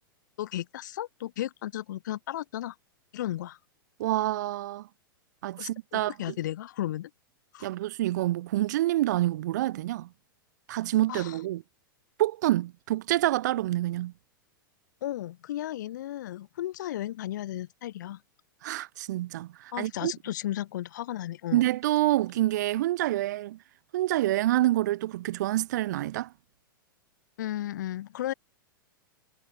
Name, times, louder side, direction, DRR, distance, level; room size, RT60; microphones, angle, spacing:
voice 1, 0.4-2.7 3.1-3.6 5.6-7.1 7.5-7.7 11.1-11.4 15.0-18.2 19.7-21.7 27.4-28.3, left 13 dB, 55° left, 1.4 m, -34 dB
voice 2, 4.0-4.9 5.4-6.3 7.6-10.1 10.7-11.6 12.2-14.1 18.6-20.1 21.5-23.6 23.9-26.3, right 15 dB, 50° right, 0.9 m, -27 dB
figure-of-eight pair, 100°, 12 cm